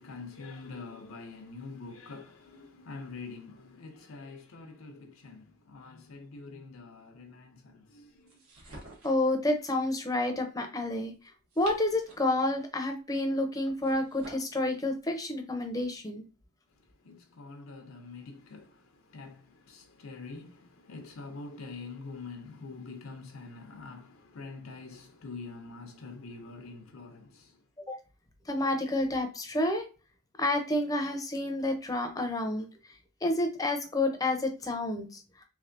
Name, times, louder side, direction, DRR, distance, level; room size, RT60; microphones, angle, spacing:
voice 1, 0.0-8.4 16.7-27.6, left 3 dB, 75° left, 0.6 m, -45 dB
sound 1, 8.3-9.3 11.3-12.4 13.6-14.5, right 2 dB, 80° right, 1.3 m, -49 dB
voice 2, 9.0-11.1 11.6-16.2 27.9-28.0 28.5-29.8 30.4-32.7 33.2-35.2, left 1 dB, 15° left, 0.5 m, -29 dB
3.5 x 3.3 x 2.6 m
head